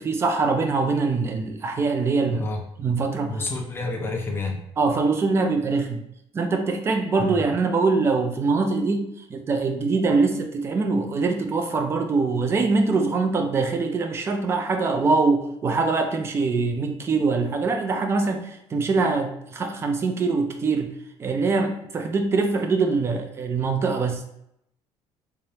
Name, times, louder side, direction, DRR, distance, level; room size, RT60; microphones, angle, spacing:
voice 1, 0.0-2.5 2.8-3.3 4.8-6.0 6.3-20.9 21.2-24.4, right 4 dB, 25° right, 5 dB, 0.4 m, -23 dB
voice 2, 2.3-2.6 3.3-4.6 7.2-7.5, left 2 dB, 20° left, 1 dB, 0.7 m, -29 dB
3.5 x 3.4 x 2.8 m, 0.77 s
cardioid pair, 165°, 11 cm